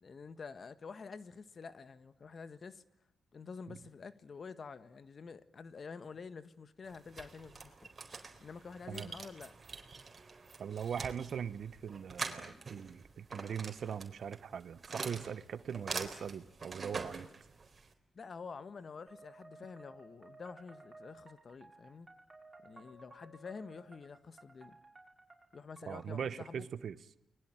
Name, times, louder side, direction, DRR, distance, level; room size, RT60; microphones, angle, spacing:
voice 1, 0.0-2.8 3.3-7.9 8.4-9.5 18.1-22.1 22.6-24.8 25.5-26.6, left 5 dB, 50° left, 1.6 m, -48 dB
sound 1, 6.8-17.9, right 4 dB, 40° right, 4.1 m, -45 dB
voice 2, 10.6-17.3 25.8-27.0, right 7 dB, 65° right, 1.2 m, -41 dB
sound 2, 19.1-26.3, right 2 dB, 25° right, 6.5 m, -57 dB
29.5 x 21.0 x 9.1 m
cardioid pair, 65°, 0 cm